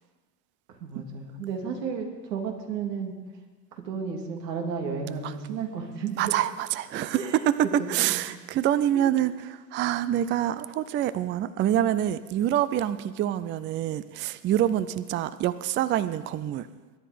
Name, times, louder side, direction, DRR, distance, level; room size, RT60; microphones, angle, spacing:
voice 1, 0.8-3.1 3.7-6.3 7.1-7.5 8.9-9.2, right 6 dB, 90° right, 3 dB, 2.6 m, -33 dB
voice 2, 6.2-16.7, right 11 dB, 25° right, 15 dB, 0.4 m, -26 dB
21.5 x 9.9 x 5.1 m, 1.3 s
supercardioid pair, 110°, 48 cm